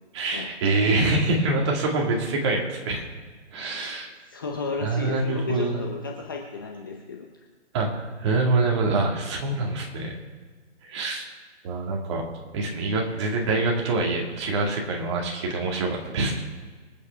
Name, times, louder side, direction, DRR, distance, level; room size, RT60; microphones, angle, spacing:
voice 1, 0.1-3.0 3.5-4.1 4.8-5.8 7.7-10.1 10.8-11.3 11.6-12.2 12.5-16.5, right 2 dB, 25° right, 0 dB, 2.1 m, -25 dB
voice 2, 4.3-7.4, left 4 dB, 20° left, 1 dB, 0.6 m, -33 dB
24.5 x 8.5 x 3.5 m, 1.4 s
hypercardioid pair, 155°, 35 cm